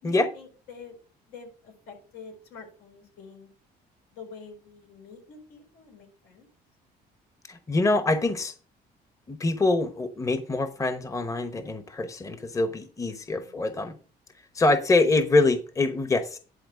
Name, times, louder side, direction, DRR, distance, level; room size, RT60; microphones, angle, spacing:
voice 1, 0.0-0.9 1.3-3.5 4.1-6.5 13.3-13.7, left 5 dB, 85° left, 2 dB, 4.4 m, -47 dB
voice 2, 7.5-8.5 9.3-13.9 14.5-16.4, left 2 dB, 20° left, 10 dB, 1.0 m, -24 dB
10.5 x 4.3 x 6.5 m, 0.37 s
cardioid pair, 110°, 17 cm